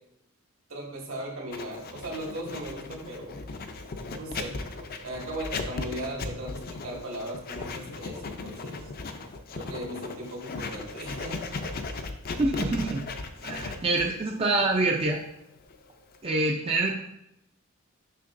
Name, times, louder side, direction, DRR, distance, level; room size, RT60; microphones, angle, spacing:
voice 1, 0.7-3.4 4.2-4.6 5.0-8.8 9.5-11.5, right 1 dB, 75° right, -2 dB, 2.0 m, -37 dB
Writing, 1.5-16.3, left 3 dB, 45° left, 0.5 m, -37 dB
voice 2, 12.3-13.1 13.4-15.2 16.2-17.0, right 2 dB, 25° right, 0 dB, 0.4 m, -26 dB
6.6 x 5.9 x 2.5 m, 0.83 s
head